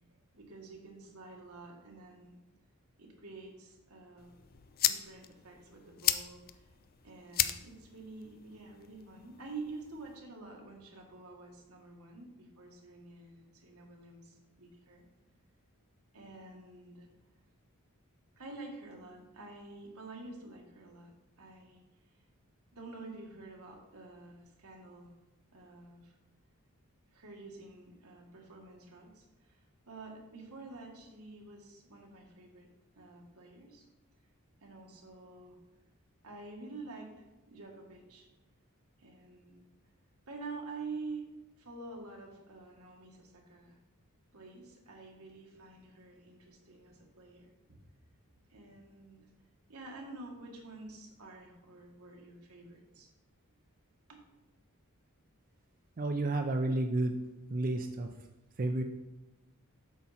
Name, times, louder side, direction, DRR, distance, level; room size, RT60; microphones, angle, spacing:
voice 1, 0.3-2.4 3.0-4.3 4.8-6.7 7.0-15.0 16.1-17.1 18.4-21.8 22.7-25.2 25.5-26.1 27.1-29.6 29.9-32.7 32.9-33.8 34.6-35.6 36.2-37.1 37.5-38.3 39.0-39.6 40.3-41.3 41.6-43.8 44.3-47.8 48.5-49.3 49.7-53.1 54.1-54.2, right 3 dB, 85° right, 0 dB, 1.7 m, -48 dB
sound 1, 4.2-10.2, left 11 dB, 45° left, 0.4 m, -36 dB
voice 2, 56.0-57.1 57.5-58.1 58.6-58.8, right 2 dB, 40° right, 5 dB, 0.5 m, -31 dB
8.2 x 5.9 x 4.2 m, 1.0 s
head